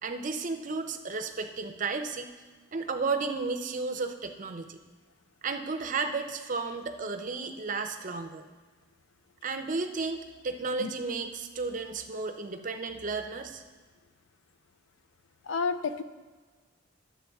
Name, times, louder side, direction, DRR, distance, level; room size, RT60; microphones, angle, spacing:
voice 1, 0.0-2.3 2.7-4.8 5.4-8.4 9.4-13.6, right 4 dB, 40° right, 7 dB, 0.5 m, -33 dB
voice 2, 15.5-16.0, left 5 dB, 65° left, 11 dB, 0.4 m, -30 dB
11.5 x 7.6 x 3.5 m, 1.4 s
head